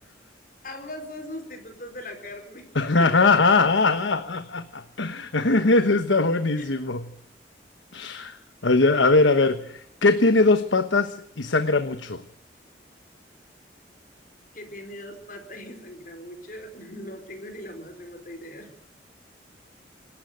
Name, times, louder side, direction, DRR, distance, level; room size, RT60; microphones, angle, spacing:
voice 1, 0.6-2.7 3.0-3.1 6.6-6.7 14.5-18.7, left 1 dB, 45° left, 5 dB, 4.5 m, -39 dB
voice 2, 2.7-7.0 7.9-8.4 8.6-12.2, left 3 dB, 85° left, 10 dB, 1.2 m, -21 dB
26.5 x 13.0 x 8.0 m, 0.73 s
head